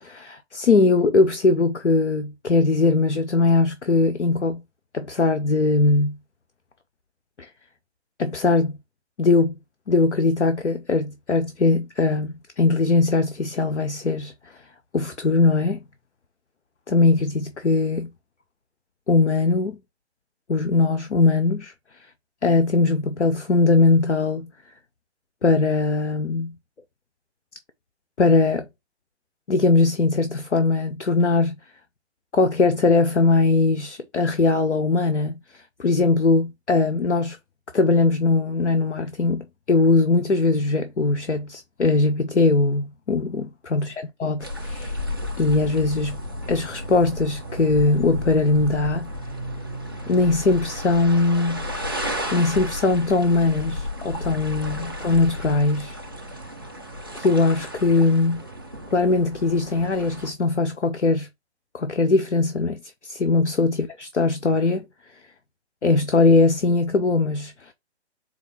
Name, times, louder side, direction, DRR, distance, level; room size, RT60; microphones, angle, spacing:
voice 1, 0.0-4.6 4.9-6.2 7.4-7.5 8.2-8.8 9.2-9.6 9.9-14.3 14.9-15.8 16.9-18.1 19.1-19.8 20.5-21.7 22.4-24.5 25.4-26.6 28.2-28.7 29.5-31.6 32.3-37.4 37.7-43.9 44.2-45.0 45.4-46.2 46.5-49.1 50.1-51.6 52.3-56.0 57.1-58.4 58.9-61.3 61.7-64.8 65.8-67.7, left 3 dB, 90° left, 0.6 m, -20 dB
sound 1, 44.4-60.3, left 1 dB, 20° right, 0.3 m, -33 dB
4.1 x 2.4 x 4.2 m
figure-of-eight pair, 140°, 34 cm